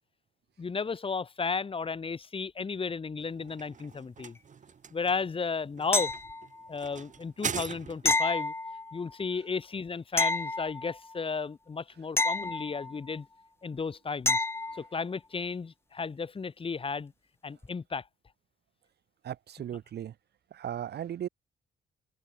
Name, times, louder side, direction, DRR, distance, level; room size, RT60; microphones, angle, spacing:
voice 1, 0.6-4.4 4.9-6.1 6.7-8.5 8.9-13.3 13.6-14.4 14.8-17.1 17.4-18.0, left 5 dB, 30° left, 4.0 m, -34 dB
sound 1, 3.2-8.3, right 7 dB, 45° right, 5.1 m, -41 dB
sound 2, 5.9-6.7 8.0-9.1 10.2-11.2 12.2-13.2 14.3-14.9 17.6-17.7, left 2 dB, 15° left, 1.5 m, -30 dB
voice 2, 19.2-20.1 20.5-21.3, right 10 dB, 70° right, 3.1 m, -36 dB
cardioid pair, 135°, 18 cm